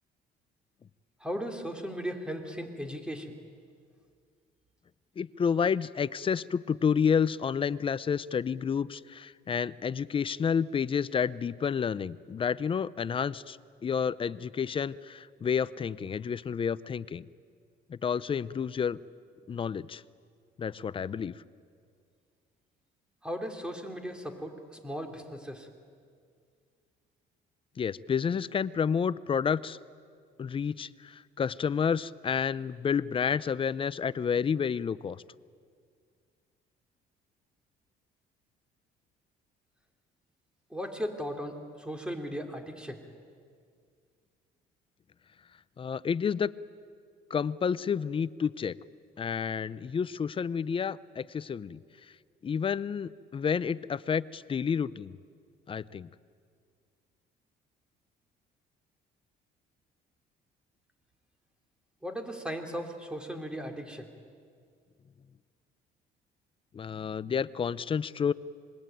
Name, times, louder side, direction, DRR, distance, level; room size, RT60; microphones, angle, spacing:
voice 1, 1.2-3.4 23.2-25.7 40.7-43.0 62.0-64.1, equal, 5° right, 4 dB, 3.4 m, -37 dB
voice 2, 5.2-13.6 13.8-17.3 17.9-19.0 19.5-20.0 20.6-21.3 27.8-29.8 30.4-35.2 45.8-46.5 47.3-48.8 49.2-51.8 52.4-55.2 55.7-56.1 66.7-68.3, left 7 dB, 30° left, 18 dB, 0.6 m, -30 dB
26.0 x 22.0 x 9.2 m, 2.1 s
cardioid pair, 110°, 17 cm